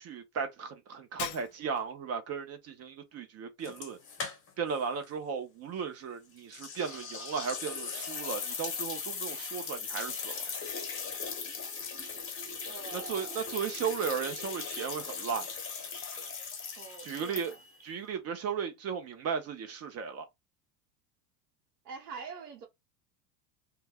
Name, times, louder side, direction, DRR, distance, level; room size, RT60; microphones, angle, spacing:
voice 1, 0.0-4.0 4.6-10.3 13.1-15.5 17.0-17.5 17.8-20.2, right 6 dB, 35° right, 0.6 m, -35 dB
Shatter, 1.2-2.0, left 11 dB, 70° left, 0.6 m, -40 dB
sound 1, 3.6-4.8 5.0-5.1 6.5-17.8, left 5 dB, 25° left, 1.1 m, -39 dB
voice 2, 12.6-13.6 16.7-17.6 21.8-22.7, right 5 dB, 85° right, 0.9 m, -45 dB
2.2 x 2.1 x 3.3 m
hypercardioid pair, 100°, 47 cm